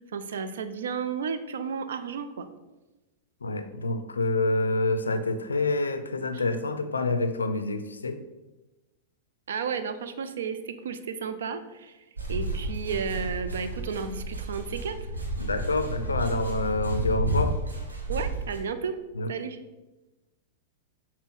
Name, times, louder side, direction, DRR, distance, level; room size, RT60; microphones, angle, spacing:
voice 1, 0.1-2.5 6.3-6.4 9.5-12.0 12.3-15.0 18.1-19.0 19.3-19.6, right 6 dB, 75° right, 10 dB, 0.4 m, -33 dB
voice 2, 3.4-8.2 15.4-17.6 19.2-19.3, left 2 dB, 90° left, 9 dB, 0.4 m, -27 dB
sound 1, 12.2-18.6, right 1 dB, 90° right, 0.8 m, -31 dB
5.6 x 2.1 x 4.0 m, 1.1 s
hypercardioid pair, 105°, 0 cm